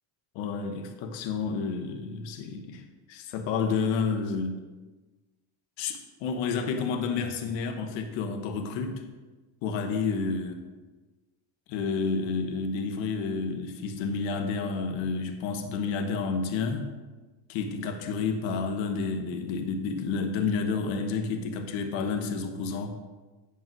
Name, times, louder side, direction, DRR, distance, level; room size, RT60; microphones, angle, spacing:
voice 1, 0.3-4.6 5.8-9.0 9.6-10.6 11.7-16.9 17.5-23.0, left 5 dB, 75° left, 5 dB, 1.3 m, -30 dB
9.4 x 5.4 x 4.6 m, 1.2 s
cardioid pair, 105°, 45 cm